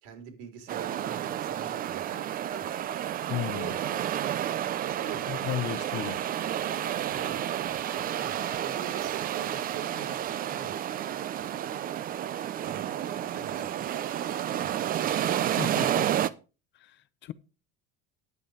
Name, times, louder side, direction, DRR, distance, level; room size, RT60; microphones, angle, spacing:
voice 1, 0.0-2.7 3.5-4.0 4.9-5.5 7.1-7.4 8.2-8.3 8.6-10.9 11.4-11.6 12.6-14.8, right 7 dB, 80° right, 3.7 m, -43 dB
sound 1, 0.7-16.3, right 11 dB, 30° right, 0.6 m, -31 dB
voice 2, 3.3-3.7 5.3-6.2 15.6-16.1 16.7-17.3, left 12 dB, 40° left, 0.7 m, -34 dB
10.5 x 8.2 x 4.9 m
cardioid pair, 155°, 29 cm